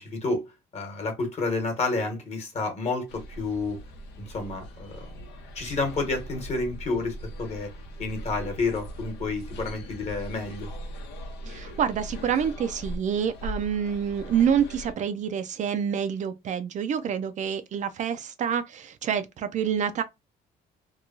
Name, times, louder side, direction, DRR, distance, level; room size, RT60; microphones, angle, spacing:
voice 1, 0.0-3.8 4.2-5.0 5.5-7.7 8.0-10.7, left 3 dB, 40° left, 1.2 m, -30 dB
sound 1, 3.1-14.9, equal, 85° left, 0.9 m, -40 dB
voice 2, 11.4-20.0, right 8 dB, 45° right, 0.4 m, -27 dB
2.9 x 2.2 x 2.5 m
cardioid pair, 110°, 17 cm